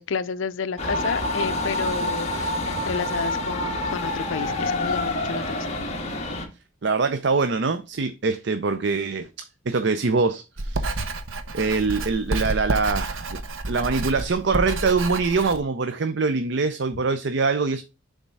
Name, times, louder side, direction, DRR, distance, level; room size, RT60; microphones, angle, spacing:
voice 1, 0.0-5.7, left 5 dB, 75° left, 0.5 m, -31 dB
sound 1, 0.8-6.5, left 2 dB, 35° left, 1.5 m, -27 dB
voice 2, 6.8-9.3 9.7-11.1 11.5-13.4 13.7-17.8, right 4 dB, 60° right, 0.5 m, -24 dB
Writing, 10.6-15.6, right 2 dB, 80° right, 0.9 m, -29 dB
7.2 x 3.6 x 5.4 m
head